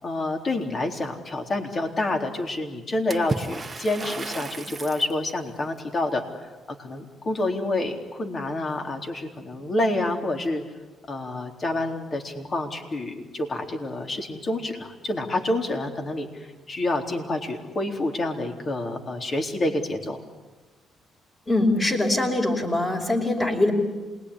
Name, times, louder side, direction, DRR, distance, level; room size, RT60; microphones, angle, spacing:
voice 1, 0.0-6.2 6.8-10.6 11.1-20.2, left 2 dB, 40° left, 3 dB, 3.9 m, -28 dB
Water / Splash splatter, 3.1-5.2, right 3 dB, 25° right, 1.5 m, -33 dB
voice 2, 21.5-23.7, left 2 dB, 25° left, 1 dB, 5.3 m, -23 dB
27.5 x 21.0 x 9.9 m, 1.3 s
cardioid pair, 90°, 0 cm